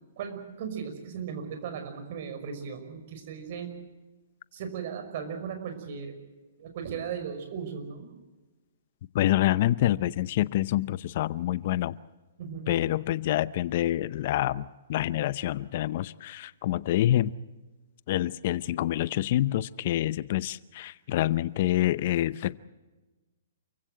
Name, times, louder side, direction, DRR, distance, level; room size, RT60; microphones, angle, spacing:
voice 1, 0.2-3.7 4.5-6.2 6.6-8.1 12.4-12.7, right 7 dB, 55° right, 7 dB, 5.7 m, -37 dB
voice 2, 9.1-12.0 12.7-17.3 18.1-22.6, left 13 dB, 50° left, 18 dB, 0.7 m, -27 dB
28.5 x 16.0 x 7.7 m, 1.2 s
hypercardioid pair, 135°, 0 cm